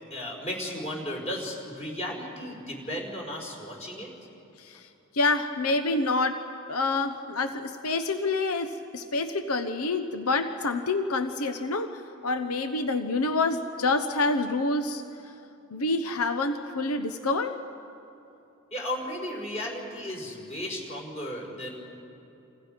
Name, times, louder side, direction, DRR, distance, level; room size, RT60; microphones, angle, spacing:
voice 1, 0.1-4.1 18.7-21.9, left 1 dB, 30° left, 0 dB, 4.7 m, -35 dB
voice 2, 4.6-15.3 15.7-17.6, left 3 dB, 85° left, 8 dB, 1.0 m, -27 dB
28.5 x 27.5 x 5.2 m, 2.9 s
head